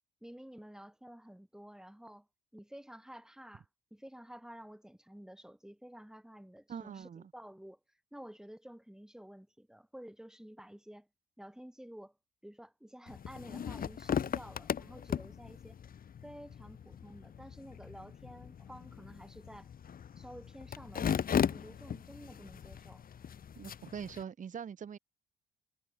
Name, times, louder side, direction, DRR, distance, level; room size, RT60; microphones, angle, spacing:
voice 1, 0.2-2.3 2.5-7.8 8.1-11.1 11.4-12.2 12.4-15.8 16.2-19.7 20.2-23.0, equal, 5° right, 4.4 m, -51 dB
voice 2, 6.7-7.3 23.6-25.0, right 7 dB, 40° right, 0.9 m, -43 dB
sound 1, 13.1-24.2, left 8 dB, 45° left, 1.1 m, -38 dB
cardioid pair, 90°, 20 cm